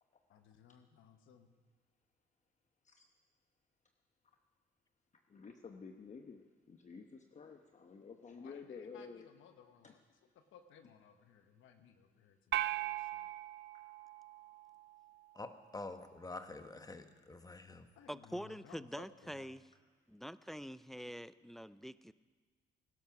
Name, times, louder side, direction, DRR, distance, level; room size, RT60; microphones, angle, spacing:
voice 1, 0.3-1.5 8.4-10.0 10.5-13.2 18.0-18.8, left 8 dB, 85° left, 7 dB, 1.2 m, -61 dB
voice 2, 5.3-9.3 9.8-10.0, left 5 dB, 35° left, 4 dB, 1.0 m, -51 dB
sound 1, 12.5-15.0, right 14 dB, 70° right, 0.5 m, -39 dB
voice 3, 15.3-17.9, left 2 dB, 20° left, 8 dB, 1.2 m, -47 dB
voice 4, 18.1-19.7 20.1-22.1, equal, ahead, 15 dB, 0.4 m, -45 dB
19.0 x 11.5 x 6.0 m, 1.5 s
cardioid pair, 90°, 20 cm